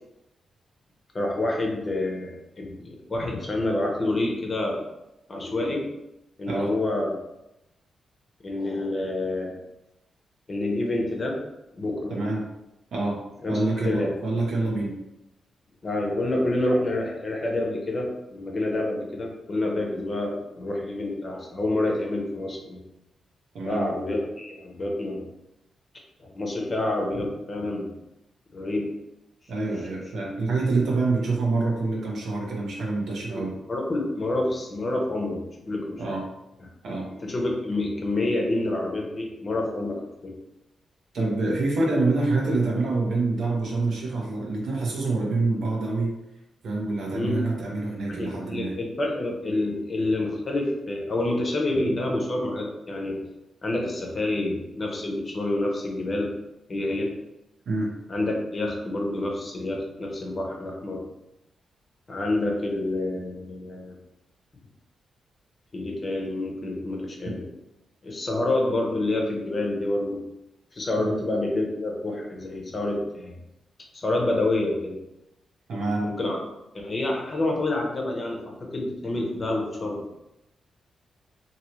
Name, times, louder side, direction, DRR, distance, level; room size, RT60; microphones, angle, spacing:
voice 1, 1.1-4.9 5.3-5.9 6.4-7.2 8.4-9.5 10.5-11.4 11.8-12.1 13.4-14.1 15.8-22.8 23.7-25.3 26.2-27.9 28.5-28.9 33.4-36.0 37.2-40.3 47.1-47.4 48.2-53.2 53.6-56.4 56.7-57.2 58.1-61.1 62.1-63.9 65.7-67.4 68.0-70.2 70.7-73.3 73.9-75.0 76.0-76.4 76.7-80.1, left 2 dB, 40° left, 0 dB, 0.8 m, -28 dB
voice 2, 12.1-12.4 12.9-13.2 13.5-14.9 23.5-23.9 29.5-33.5 36.0-36.2 36.8-37.1 41.1-46.1 46.6-48.7 57.7-57.9 71.0-71.2 75.7-76.1, right 3 dB, 75° right, -2 dB, 0.9 m, -26 dB
2.9 x 2.8 x 3.0 m, 0.91 s
cardioid pair, 75°, 0 cm